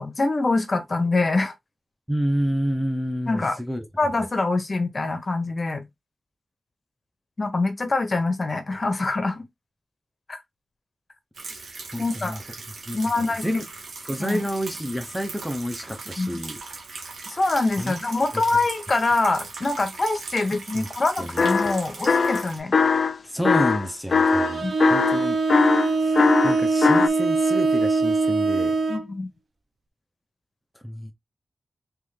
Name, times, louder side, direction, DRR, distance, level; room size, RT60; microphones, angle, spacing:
voice 1, 0.0-1.5 3.3-3.6 4.0-5.9 7.4-9.4 10.3-10.4 12.0-12.4 12.9-13.6 14.2-14.4 16.2-16.4 17.3-22.7 24.6-24.7 28.9-29.3, left 3 dB, 45° left, 1.1 m, -24 dB
voice 2, 2.1-3.8 11.9-12.4 12.9-13.6 14.0-16.6 17.8-18.0 20.7-20.9 21.2-21.4 23.2-25.4 26.0-28.7 30.8-31.1, equal, ahead, 0.8 m, -29 dB
sound 1, 11.3-22.6, right 4 dB, 85° right, 1.2 m, -39 dB
sound 2, 21.4-21.8 22.1-23.2 23.4-27.1, left 4 dB, 65° left, 0.3 m, -20 dB
Bowed string instrument, 24.1-29.1, right 3 dB, 70° right, 0.8 m, -23 dB
3.7 x 3.2 x 3.3 m
cardioid pair, 70°, 0 cm